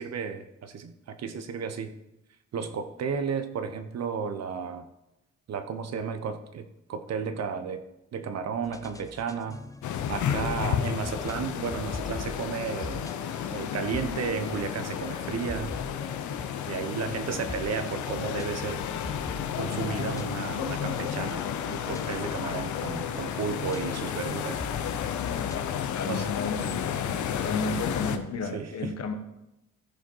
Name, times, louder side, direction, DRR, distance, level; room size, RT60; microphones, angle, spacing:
voice 1, 0.0-1.9 2.5-4.9 5.5-7.8 8.1-9.6 10.1-13.1 13.5-15.7 16.7-18.8 19.6-24.6 26.1-26.3 28.5-28.9, right 6 dB, 60° right, 8 dB, 1.1 m, -33 dB
sound 1, 8.6-25.7, left 2 dB, 10° left, 0.6 m, -44 dB
sound 2, 9.8-28.2, left 8 dB, 70° left, 0.9 m, -32 dB
voice 2, 25.5-29.1, left 4 dB, 55° left, 6 dB, 1.4 m, -33 dB
15.0 x 5.2 x 4.6 m, 0.91 s
cardioid pair, 90°, 30 cm